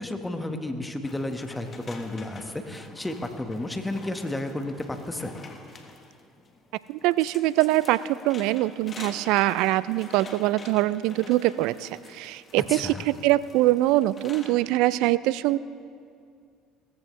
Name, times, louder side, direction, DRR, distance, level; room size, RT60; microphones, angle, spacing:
voice 1, 0.0-5.3 12.6-13.0, left 1 dB, 10° left, 6 dB, 1.4 m, -32 dB
sound 1, 1.0-14.5, left 4 dB, 35° left, 1.5 m, -47 dB
voice 2, 6.9-15.6, right 16 dB, 70° right, 18 dB, 0.3 m, -23 dB
17.5 x 14.5 x 3.2 m, 2.3 s
hypercardioid pair, 65°, 0 cm